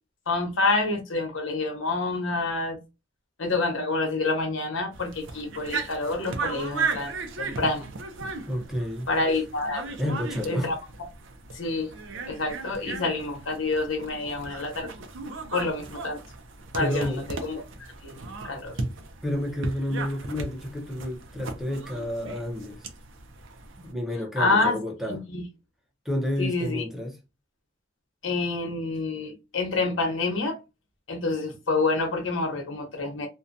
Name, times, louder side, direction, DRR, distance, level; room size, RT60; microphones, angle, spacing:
voice 1, 0.3-2.8 3.4-7.9 9.1-10.0 10.4-10.7 11.5-11.9 12.3-14.9 15.5-16.2 16.7-17.6 18.0-18.7 24.4-24.8 25.1-25.4 26.4-26.8 28.2-30.6 31.1-33.3, left 3 dB, 85° left, 1.0 m, -27 dB
sound 1, 4.9-23.9, right 4 dB, 75° right, 0.5 m, -36 dB
voice 2, 8.5-9.1 10.0-10.7 16.8-17.3 19.2-22.9 23.8-25.2 26.0-27.1, equal, ahead, 0.6 m, -30 dB
2.6 x 2.2 x 2.5 m
head